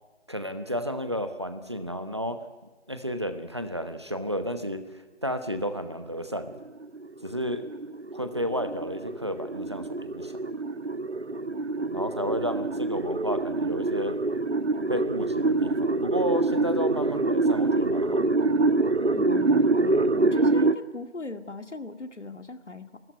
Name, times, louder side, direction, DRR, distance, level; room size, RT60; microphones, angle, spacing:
voice 1, 0.3-2.4 2.9-6.6 7.2-7.6 8.1-10.4 11.9-14.1 14.9-18.2, equal, 25° right, 9 dB, 1.0 m, -32 dB
sound 1, 6.4-20.7, right 3 dB, 70° right, 1.2 m, -26 dB
voice 2, 19.1-23.0, left 3 dB, 85° left, 8 dB, 2.1 m, -39 dB
27.5 x 14.0 x 9.6 m, 1.2 s
figure-of-eight pair, 170°, 35 cm